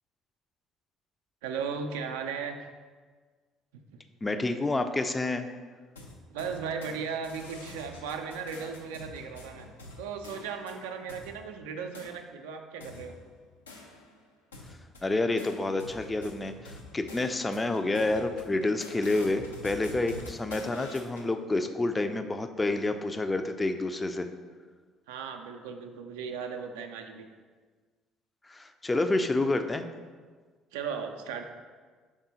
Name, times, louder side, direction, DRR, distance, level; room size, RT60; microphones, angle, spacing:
voice 1, 1.4-2.6 6.3-9.7 10.0-13.1 25.1-27.2 30.7-31.4, right 6 dB, 75° right, 5 dB, 0.3 m, -36 dB
voice 2, 4.2-5.5 15.0-24.3 28.5-29.9, left 2 dB, 20° left, 8 dB, 0.4 m, -29 dB
sound 1, 5.9-7.0 7.2-11.3 11.9-12.1 12.8-14.2 14.5-21.3, left 2 dB, 85° left, 0.5 m, -46 dB
4.9 x 3.6 x 2.7 m, 1.5 s
figure-of-eight pair, 55°, 0 cm